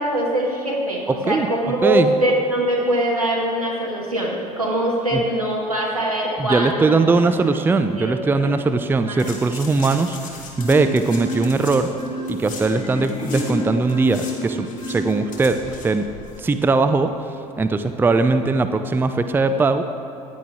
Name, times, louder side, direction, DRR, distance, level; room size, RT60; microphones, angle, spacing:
voice 1, 0.0-6.9 7.9-8.7 9.1-9.2, right 1 dB, 90° right, -3 dB, 1.8 m, -23 dB
voice 2, 1.1-2.1 5.1-5.2 6.4-10.3 10.6-11.9 12.3-16.1 16.4-17.1 17.6-19.8, right 3 dB, 10° right, 9 dB, 0.5 m, -20 dB
sound 1, 9.2-13.5 13.8-16.4 16.6-16.7, left 4 dB, 45° left, 2.1 m, -39 dB
Marimba xylophone, 10.6-15.7, equal, 25° left, 2.9 m, -29 dB
15.0 x 10.0 x 3.6 m, 2.9 s
figure-of-eight pair, 65°, 18 cm